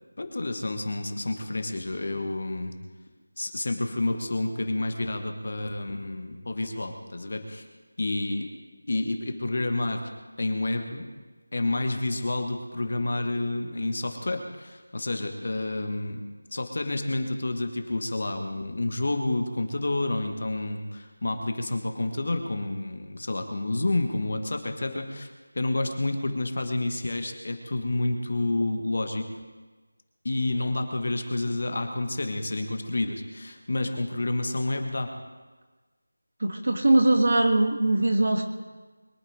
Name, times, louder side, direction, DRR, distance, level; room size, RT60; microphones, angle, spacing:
voice 1, 0.2-2.7 3.4-7.7 8.0-8.5 8.9-10.1 10.4-11.1 11.5-16.2 16.5-29.3 30.2-35.1, left 2 dB, 35° left, 5 dB, 1.4 m, -29 dB
voice 2, 36.4-38.4, right 2 dB, 40° right, 3 dB, 1.9 m, -21 dB
22.5 x 11.0 x 4.9 m, 1.3 s
figure-of-eight pair, 180°, 0 cm